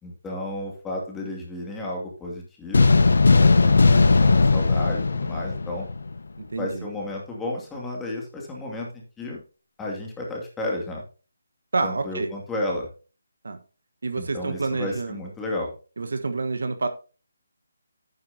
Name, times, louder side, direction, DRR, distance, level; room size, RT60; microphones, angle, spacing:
voice 1, 0.0-3.0 3.3-5.9 6.6-9.4 9.8-11.0 11.8-12.9 14.2-15.7, left 1 dB, 10° left, -2 dB, 2.5 m, -32 dB
sound 1, 2.7-6.2, left 3 dB, 70° left, 0.9 m, -18 dB
voice 2, 6.4-6.9 11.7-12.3 13.4-13.6 14.0-15.2 16.0-16.9, right 3 dB, 70° right, 8 dB, 1.3 m, -28 dB
10.5 x 9.4 x 2.8 m, 0.35 s
figure-of-eight pair, 160°, 0 cm